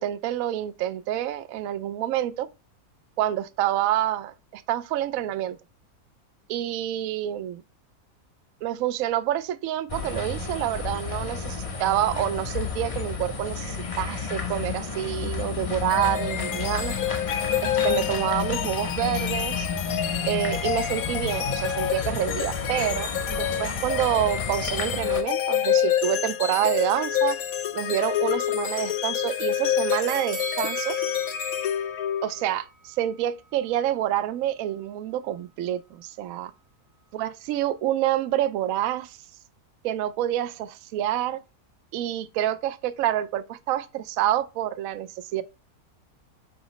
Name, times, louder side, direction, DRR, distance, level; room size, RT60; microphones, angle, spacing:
voice 1, 0.0-2.5 3.2-5.6 6.5-7.6 8.6-16.9 17.6-19.7 20.2-27.4 27.7-31.0 32.2-36.5 37.1-39.2 39.8-41.4 41.9-45.4, right 12 dB, 70° right, 0.9 m, -27 dB
sound 1, 9.9-25.2, left 5 dB, 40° left, 0.5 m, -32 dB
sound 2, 15.9-32.6, left 10 dB, 70° left, 1.1 m, -28 dB
sound 3, 30.1-33.2 33.6-33.7, right 4 dB, 50° right, 0.4 m, -39 dB
6.3 x 4.9 x 3.1 m
omnidirectional pair, 1.6 m